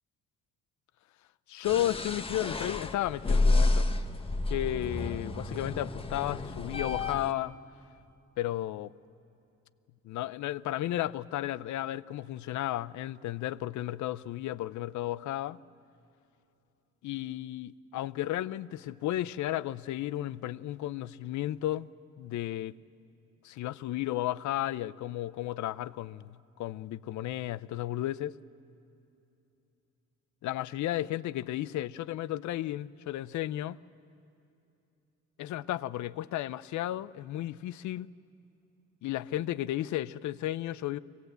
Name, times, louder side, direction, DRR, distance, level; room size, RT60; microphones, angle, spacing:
voice 1, 1.5-3.9 4.5-7.6 8.4-8.9 10.0-15.6 17.0-21.9 22.2-22.8 23.4-28.4 30.4-33.8 35.4-38.1 39.0-41.0, left 14 dB, 70° left, 0.5 m, -33 dB
sound 1, 1.6-7.3, left 2 dB, 20° left, 0.9 m, -30 dB
24.0 x 18.0 x 8.0 m
cardioid pair, 90°, 30 cm